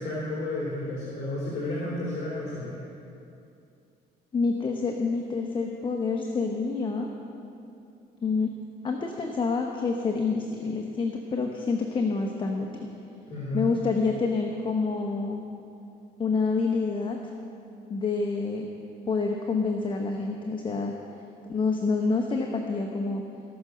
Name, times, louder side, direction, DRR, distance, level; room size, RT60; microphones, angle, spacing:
voice 1, 0.0-2.8 13.2-13.7, left 1 dB, 45° left, -6 dB, 3.2 m, -32 dB
voice 2, 4.3-7.1 8.2-8.5 8.8-12.9 13.5-15.4 16.2-17.2 17.9-18.7 19.1-20.9 21.5-23.2, left 4 dB, 30° left, 2 dB, 1.0 m, -27 dB
18.0 x 6.2 x 6.8 m, 2.7 s
cardioid pair, 110°, 17 cm